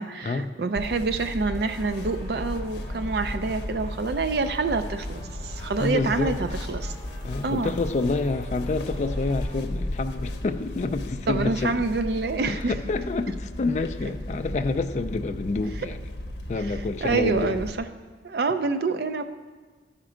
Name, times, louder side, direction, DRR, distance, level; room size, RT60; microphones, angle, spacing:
voice 1, 0.0-6.9 7.4-7.7 11.3-12.7 16.6-17.9 18.2-19.2, right 3 dB, 60° right, 9 dB, 0.4 m, -27 dB
sound 1, 0.8-17.7, left 1 dB, 70° left, 0.7 m, -35 dB
sound 2, 1.5-9.5, equal, ahead, 2.5 m, -48 dB
voice 2, 5.8-6.4 7.2-11.7 12.5-16.0 16.5-17.6, left 3 dB, 40° left, 7 dB, 0.3 m, -28 dB
13.0 x 4.4 x 5.0 m, 1.4 s
head